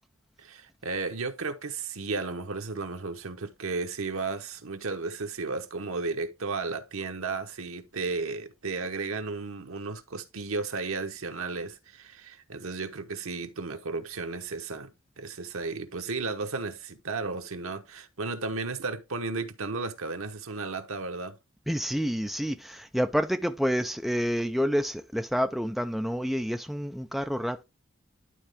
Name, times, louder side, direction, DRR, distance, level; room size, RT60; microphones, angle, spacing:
voice 1, 0.4-21.4, right 3 dB, 85° right, 1.1 m, -34 dB
voice 2, 21.7-27.6, equal, ahead, 0.4 m, -28 dB
11.5 x 3.9 x 3.5 m
head